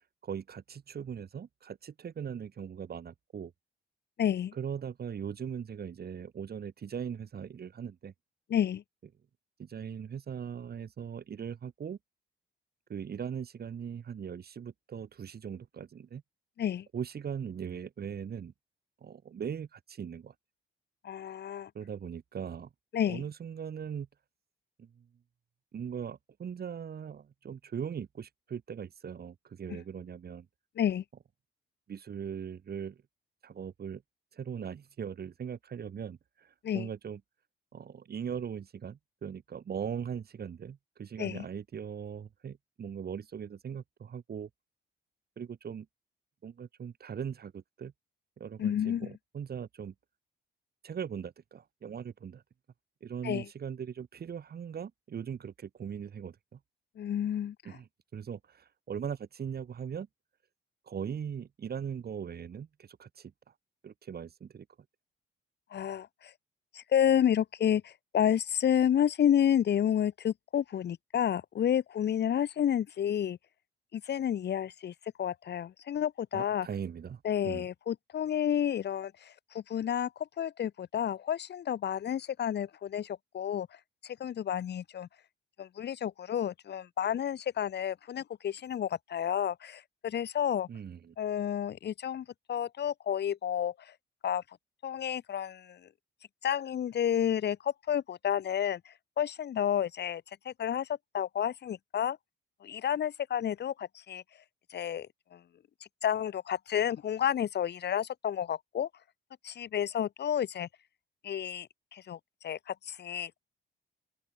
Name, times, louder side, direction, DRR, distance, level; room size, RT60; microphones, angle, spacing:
voice 1, 0.2-3.5 4.5-8.1 9.6-12.0 12.9-16.2 16.9-18.5 19.0-20.3 21.7-22.7 23.1-24.1 24.8-25.1 25.7-30.5 31.9-33.0 33.4-34.0 34.3-37.2 37.7-44.5 45.4-45.9 46.4-47.9 48.4-49.9 50.8-52.4 53.0-56.6 57.6-60.1 60.9-63.3 63.8-64.6 76.3-77.6 90.7-91.1, right 7 dB, 50° right, 6.8 m, -40 dB
voice 2, 4.2-4.5 8.5-8.8 16.6-16.9 21.0-21.7 22.9-23.2 29.7-29.8 30.8-31.0 36.6-36.9 41.2-41.4 48.6-49.1 53.2-53.5 57.0-57.8 65.7-66.3 66.7-73.4 73.9-76.7 77.2-83.7 84.0-85.1 85.6-90.7 91.2-93.9 94.2-94.4 94.8-95.8 96.4-100.9 101.1-102.2 102.6-104.2 104.7-105.4 106.0-108.9 109.4-110.7 111.2-113.4, left 9 dB, 60° left, 1.6 m, -30 dB
open air
cardioid pair, 90°, 20 cm